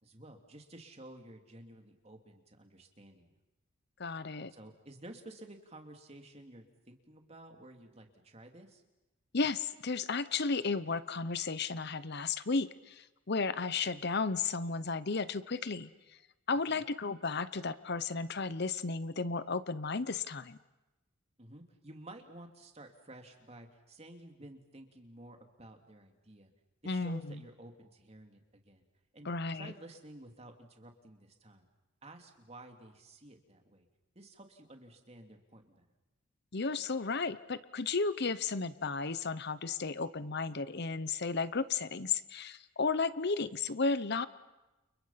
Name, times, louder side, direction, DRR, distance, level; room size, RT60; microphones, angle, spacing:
voice 1, 0.0-3.3 4.5-8.8 16.7-16.8 21.4-26.5 26.8-28.8 29.1-29.3 29.5-31.7 32.0-33.9 34.1-35.8, right 1 dB, 30° right, 4 dB, 2.9 m, -52 dB
voice 2, 4.0-4.5 9.3-15.9 16.5-20.6 26.9-27.4 29.2-29.7 36.5-44.3, left 4 dB, 55° left, 14 dB, 0.9 m, -34 dB
30.0 x 30.0 x 5.8 m, 1.0 s
head